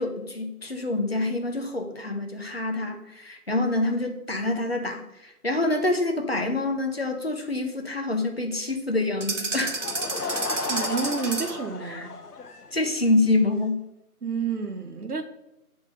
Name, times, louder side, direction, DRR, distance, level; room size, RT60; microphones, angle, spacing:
voice 1, 0.0-9.8 11.8-12.1 12.7-13.8, left 2 dB, 40° left, 0.7 m, -26 dB
sound 1, 9.2-11.7, right 3 dB, 55° right, 0.7 m, -31 dB
Laughter / Crowd, 9.6-13.1, left 4 dB, 80° left, 0.8 m, -34 dB
voice 2, 10.7-12.1 14.2-15.2, right 5 dB, 75° right, 1.1 m, -29 dB
7.3 x 3.3 x 5.4 m
figure-of-eight pair, 165°, 45 cm